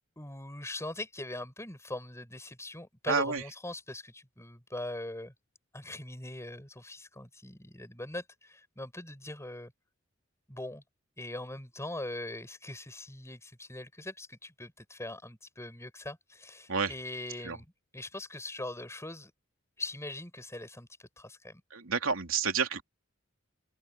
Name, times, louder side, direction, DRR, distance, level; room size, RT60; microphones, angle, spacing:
voice 1, 0.2-5.3 5.7-9.7 10.5-10.8 11.2-17.7 17.9-19.3 19.8-20.9 21.2-21.6, left 1 dB, 15° left, 7.0 m, -41 dB
voice 2, 3.1-3.4 16.7-16.9 17.4-17.6 21.7-22.8, right 5 dB, 85° right, 3.0 m, -29 dB
open air
head